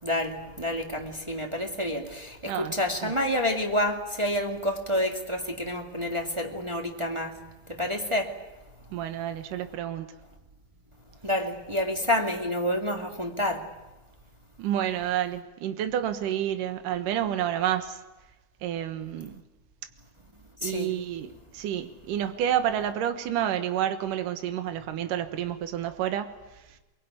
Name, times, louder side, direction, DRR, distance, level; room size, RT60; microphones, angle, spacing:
voice 1, 0.0-7.4 7.7-8.3 11.2-13.7 20.6-20.9, left 1 dB, 10° right, 1.4 m, -28 dB
voice 2, 8.9-10.1 14.6-18.0 18.6-19.4 20.6-26.3, right 10 dB, 75° right, 2.9 m, -29 dB
23.5 x 22.0 x 9.5 m
omnidirectional pair, 4.0 m